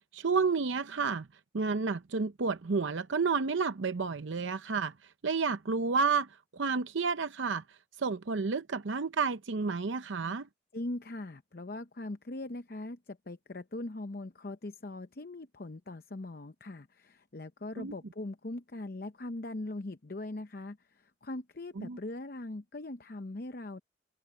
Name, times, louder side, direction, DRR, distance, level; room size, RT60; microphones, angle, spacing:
voice 1, 0.1-1.3 1.5-10.5 17.8-17.9 21.8-22.0, right 4 dB, 80° right, 0.7 m, -31 dB
voice 2, 10.7-23.8, left 2 dB, 50° left, 0.8 m, -41 dB
head